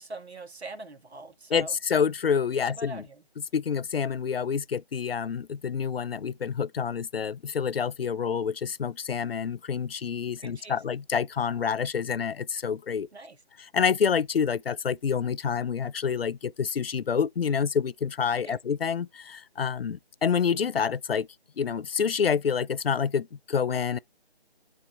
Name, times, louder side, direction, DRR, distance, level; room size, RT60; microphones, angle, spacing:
voice 1, 0.0-1.8 2.7-3.2 10.4-10.8 13.1-13.4 18.5-18.6, right 2 dB, 90° right, 2.0 m, -42 dB
voice 2, 1.5-3.0 3.5-13.1 13.6-21.3 21.6-24.0, left 7 dB, 65° left, 0.5 m, -28 dB
11.0 x 4.2 x 3.3 m
figure-of-eight pair, 175°, 32 cm